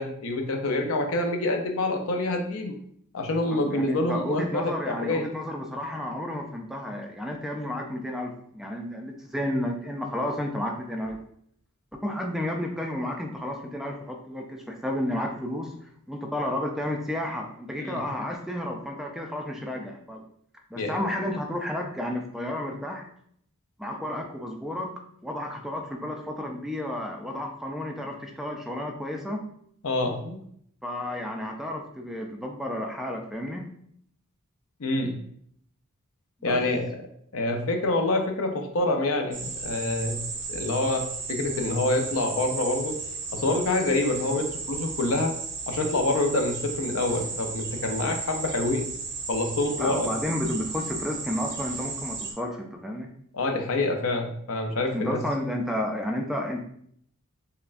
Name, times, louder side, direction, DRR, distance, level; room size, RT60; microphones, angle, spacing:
voice 1, 0.0-2.8 3.1-5.2 17.8-18.0 20.8-20.9 29.8-30.4 34.8-35.1 36.4-36.9 37.3-40.2 40.5-42.9 43.3-45.3 45.7-48.9 49.3-50.1 53.3-55.2, left 2 dB, 70° left, 3 dB, 0.6 m, -26 dB
voice 2, 3.7-11.2 12.0-15.7 16.1-20.3 20.7-23.1 23.8-29.5 30.8-33.7 36.4-36.6 49.8-53.1 54.9-56.6, left 1 dB, ahead, 2 dB, 0.3 m, -32 dB
sound 1, 39.3-52.3, right 4 dB, 50° right, 0.7 m, -35 dB
5.6 x 2.1 x 2.5 m, 0.67 s
head